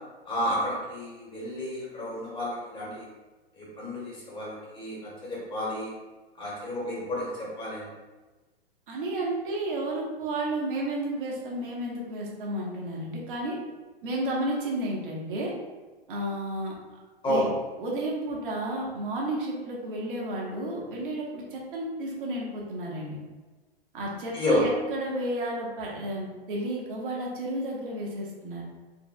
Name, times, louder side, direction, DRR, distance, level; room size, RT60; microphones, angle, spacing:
voice 1, 0.3-3.0 3.6-5.9 6.4-7.9 17.2-17.4 24.3-24.6, left 1 dB, 15° left, -5 dB, 1.4 m, -30 dB
voice 2, 8.9-13.6 14.0-15.5 16.1-16.7 17.2-17.5 17.8-23.2 23.9-28.6, right 1 dB, 60° right, -3 dB, 1.3 m, -32 dB
4.6 x 3.3 x 2.3 m, 1.2 s
hypercardioid pair, 115°, 30 cm